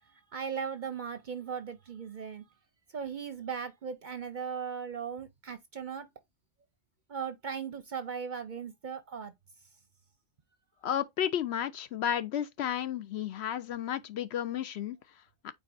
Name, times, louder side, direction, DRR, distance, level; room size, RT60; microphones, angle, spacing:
voice 1, 0.3-2.4 2.9-6.1 7.1-9.3, right 6 dB, 50° right, 0.6 m, -38 dB
voice 2, 10.8-15.5, left 10 dB, 65° left, 0.8 m, -33 dB
8.7 x 4.2 x 2.6 m
omnidirectional pair, 1.3 m